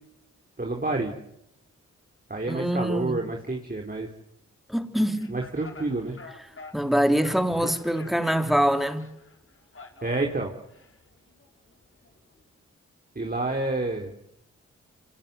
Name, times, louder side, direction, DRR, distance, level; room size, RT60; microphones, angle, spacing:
voice 1, 0.6-1.1 2.3-4.1 5.3-6.2 7.6-7.7 10.0-10.5 13.2-14.1, right 2 dB, 30° right, 3.9 m, -29 dB
voice 2, 2.5-3.2 4.7-5.4 6.7-9.1, equal, ahead, 3.4 m, -24 dB
sound 1, 5.2-12.5, left 3 dB, 45° left, 4.8 m, -48 dB
26.5 x 19.5 x 9.6 m
supercardioid pair, 45°, 30 cm